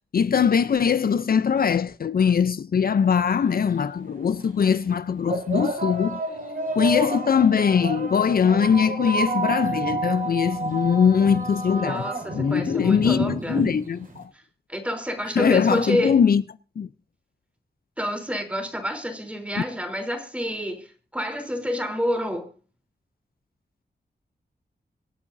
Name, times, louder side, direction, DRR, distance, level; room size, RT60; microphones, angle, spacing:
voice 1, 0.1-6.2 6.7-14.3 15.4-16.4 16.8-16.9, left 7 dB, 60° left, 0.5 m, -21 dB
sound 1, 3.2-3.3 4.2-4.4 5.3-14.2, right 2 dB, 55° right, 5.2 m, -30 dB
voice 2, 11.7-13.6 14.3-14.4 14.7-16.2 18.0-22.5, equal, 5° right, 3.4 m, -28 dB
26.0 x 8.7 x 2.6 m
wide cardioid pair, 135°, 18 cm